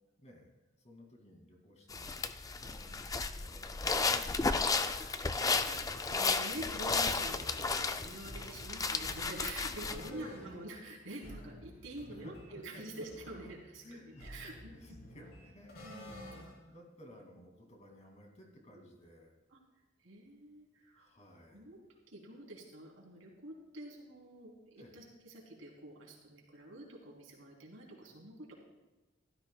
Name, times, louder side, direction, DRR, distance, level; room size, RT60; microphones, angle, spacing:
voice 1, 0.2-0.5 0.8-4.9 7.7-7.9 10.0-10.7 12.1-13.1 13.8-15.8 16.5-19.3 21.0-21.7 24.8-25.0, equal, 35° left, 1 dB, 2.3 m, -56 dB
sound 1, 1.9-10.1, left 4 dB, 20° left, 0.4 m, -33 dB
voice 2, 4.7-15.0 15.8-16.5 19.5-19.6 20.0-21.1 21.5-21.8 22.1-28.5, right 1 dB, 85° right, -2 dB, 3.3 m, -48 dB
sound 2, 7.2-16.8, equal, 55° left, 3.3 m, -52 dB
16.0 x 13.0 x 2.3 m, 1.1 s
head